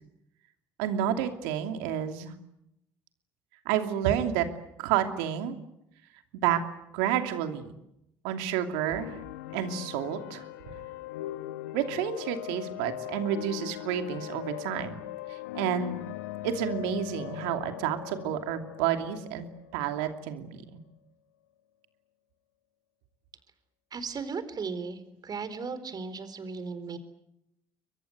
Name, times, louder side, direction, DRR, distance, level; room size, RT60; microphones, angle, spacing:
voice 1, 0.8-2.3 3.6-4.5 4.8-5.6 6.3-6.6 6.9-7.7 8.2-9.2 9.5-10.4 11.7-15.0 15.3-16.0 16.4-19.5 19.7-20.6, right 10 dB, 75° right, 7 dB, 2.8 m, -30 dB
sound 1, 8.9-20.5, left 15 dB, 80° left, 1.0 m, -40 dB
voice 2, 23.9-27.0, right 5 dB, 45° right, 12 dB, 4.3 m, -36 dB
30.0 x 23.5 x 7.9 m, 0.81 s
hypercardioid pair, 55°, 10 cm